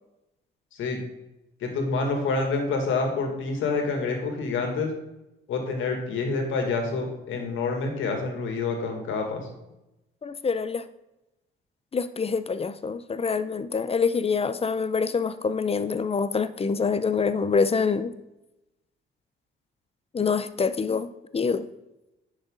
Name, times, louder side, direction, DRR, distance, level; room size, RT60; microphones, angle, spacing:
voice 1, 1.6-4.9 5.5-9.5, left 4 dB, 80° left, 3 dB, 2.3 m, -27 dB
voice 2, 10.2-10.8 11.9-18.1 20.1-21.7, left 5 dB, 30° left, 13 dB, 0.7 m, -26 dB
10.5 x 6.4 x 3.9 m, 0.94 s
cardioid pair, 90°, 20 cm